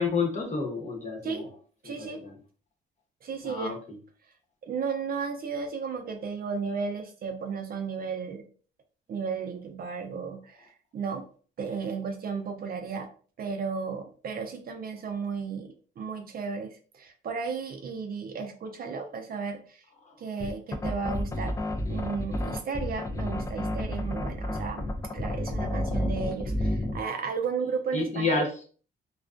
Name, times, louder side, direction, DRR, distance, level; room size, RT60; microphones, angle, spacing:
voice 1, 0.0-1.5 1.8-2.3 3.4-3.8 20.0-20.2 27.9-28.5, left 4 dB, 35° left, 0 dB, 0.9 m, -29 dB
voice 2, 1.8-2.2 3.2-3.8 4.6-8.4 9.1-11.3 11.6-13.1 13.4-19.8 20.2-21.5 21.9-28.4, right 5 dB, 50° right, 5 dB, 0.5 m, -34 dB
sound 1, 20.4-27.0, left 1 dB, 15° left, 0.3 m, -30 dB
2.3 x 2.2 x 2.4 m, 0.41 s
cardioid pair, 90°, 20 cm